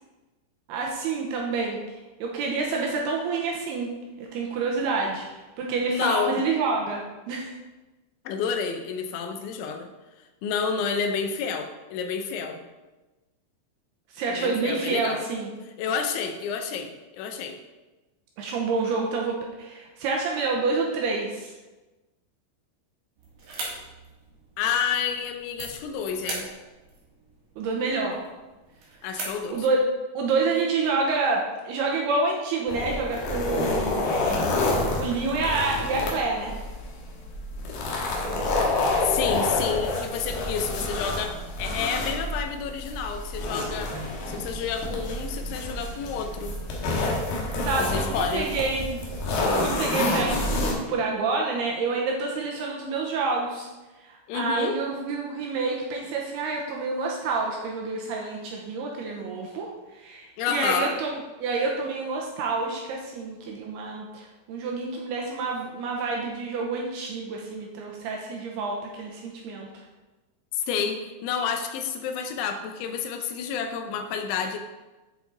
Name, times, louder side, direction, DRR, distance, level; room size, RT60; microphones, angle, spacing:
voice 1, 0.7-1.8 2.2-3.9 4.2-7.5 14.1-15.5 18.4-21.5 27.6-28.2 29.5-29.8 30.1-34.6 34.9-36.5 47.6-49.0 49.5-53.7 54.0-69.8, right 3 dB, 75° right, -1 dB, 2.5 m, -28 dB
voice 2, 5.9-6.4 8.3-9.9 10.4-12.6 14.4-15.2 15.8-17.6 24.6-26.5 29.0-29.7 39.0-43.9 44.3-46.6 47.8-48.5 54.3-54.8 60.4-61.0 70.5-74.6, left 6 dB, 85° left, 6 dB, 3.1 m, -29 dB
sound 1, 23.2-29.9, right 3 dB, 55° right, 3.5 m, -41 dB
sound 2, 32.7-50.7, left 2 dB, 65° left, 2.7 m, -28 dB
8.6 x 7.0 x 3.9 m, 1.1 s
omnidirectional pair, 5.4 m